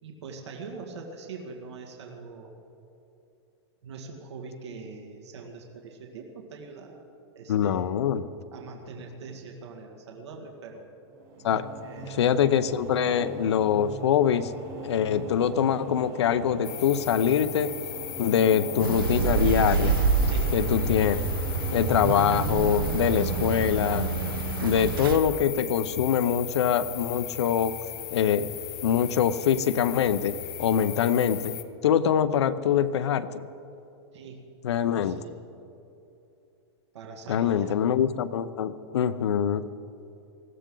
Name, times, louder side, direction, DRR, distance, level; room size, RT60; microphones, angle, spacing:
voice 1, 0.0-2.5 3.8-7.0 7.4-7.9 8.5-10.8 11.8-12.2 18.4-18.6 20.3-20.5 34.1-34.5 34.8-35.3 36.9-37.8, right 4 dB, 85° right, 1 dB, 2.1 m, -42 dB
voice 2, 7.5-8.3 11.4-11.7 12.0-14.5 14.8-17.7 18.2-20.0 20.5-21.2 21.7-24.1 24.6-27.7 28.1-28.5 28.8-31.5 31.8-33.5 34.6-35.2 37.3-39.6, left 8 dB, 80° left, 13 dB, 0.7 m, -24 dB
sound 1, 11.1-26.4, right 3 dB, 40° right, 3.3 m, -40 dB
sound 2, 16.6-31.6, left 16 dB, 25° left, 0.6 m, -38 dB
sound 3, 18.8-25.2, right 5 dB, 55° right, 1.1 m, -27 dB
19.5 x 15.0 x 3.9 m, 2.8 s
supercardioid pair, 170°, 14 cm